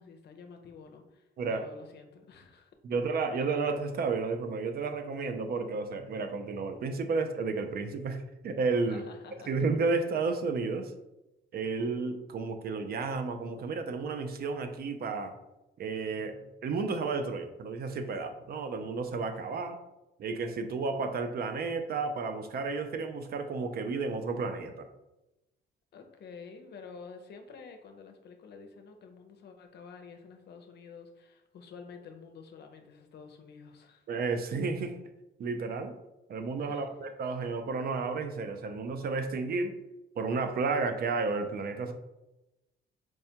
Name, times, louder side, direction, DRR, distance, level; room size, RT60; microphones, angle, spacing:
voice 1, 0.0-2.7 8.9-9.6 25.9-34.0 36.6-36.9, left 5 dB, 55° left, 5 dB, 0.6 m, -49 dB
voice 2, 2.8-9.0 9.5-10.9 11.5-15.4 15.8-19.8 20.2-24.9 34.1-35.0 35.4-35.9 36.3-39.8 40.2-41.9, right 4 dB, 50° right, 7 dB, 0.4 m, -32 dB
4.5 x 2.1 x 2.8 m, 0.96 s
cardioid pair, 90°, 20 cm